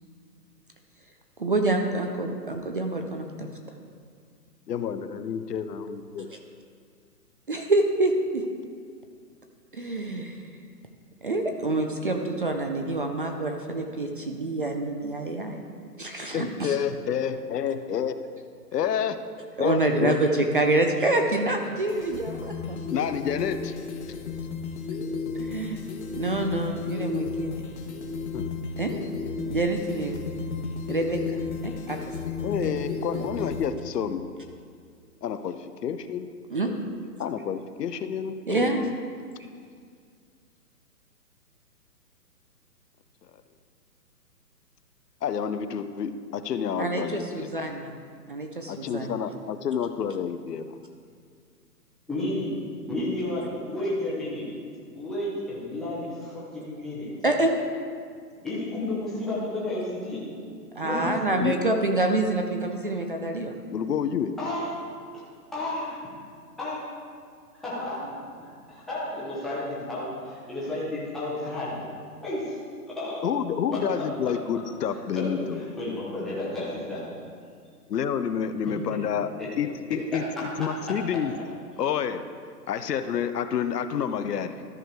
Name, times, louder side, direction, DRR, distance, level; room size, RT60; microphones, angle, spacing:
voice 1, 1.4-3.5 6.3-6.4 7.5-8.4 9.7-10.4 11.2-15.6 16.0-16.8 19.6-22.8 25.4-25.8 26.1-27.6 28.8-28.9 29.5-30.1 30.9-32.1 32.6-32.7 33.1-33.3 36.5-36.7 38.5-38.9 46.8-48.0 48.3-49.2 57.2-57.5 60.8-63.5, right 2 dB, 35° right, 4 dB, 0.4 m, -27 dB
voice 2, 4.7-6.3 16.3-18.2 18.7-19.3 19.6-20.2 22.9-23.7 28.3-28.5 32.4-34.3 35.2-36.3 37.2-38.9 45.2-47.5 48.7-50.7 61.4-61.5 63.7-64.4 73.2-75.6 77.9-79.3 79.6-81.4 81.8-82.3 82.7-84.6, left 8 dB, 75° left, 10 dB, 0.7 m, -29 dB
sound 1, 21.6-33.7, left 5 dB, 45° left, 1.2 m, -34 dB
voice 3, 52.1-52.5 52.9-54.4 54.9-57.1 58.4-60.2 60.8-61.1 64.4-64.8 65.5-66.0 66.6-66.8 67.6-71.8 72.2-72.6 73.0-73.2 74.0-74.3 74.9-75.3 75.5-77.0, left 1 dB, ahead, -9 dB, 0.7 m, -32 dB
13.0 x 4.8 x 4.6 m, 2.1 s
hypercardioid pair, 150°, 48 cm